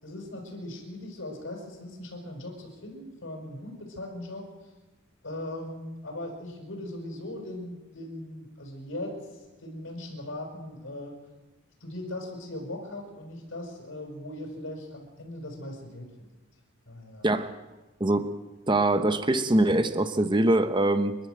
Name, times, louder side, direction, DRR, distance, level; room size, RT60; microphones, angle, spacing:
voice 1, 0.0-4.5 5.2-11.1 11.8-16.3 16.9-17.3, left 1 dB, 60° left, 0 dB, 5.5 m, -39 dB
voice 2, 18.7-21.2, right 1 dB, 20° right, 10 dB, 1.0 m, -23 dB
29.0 x 11.5 x 7.9 m, 1.2 s
head